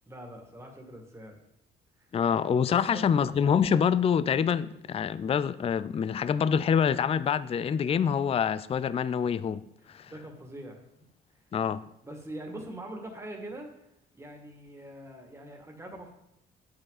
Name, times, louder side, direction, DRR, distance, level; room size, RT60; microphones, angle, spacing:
voice 1, 0.1-1.4 2.0-2.2 2.7-3.1 9.9-11.1 11.4-11.5 12.0-16.1, right 1 dB, 15° right, 2.2 m, -43 dB
voice 2, 2.1-9.6 9.9-10.1 11.5-11.9, left 7 dB, 30° left, 0.4 m, -26 dB
8.9 x 7.8 x 4.2 m
cardioid pair, 90°, 20 cm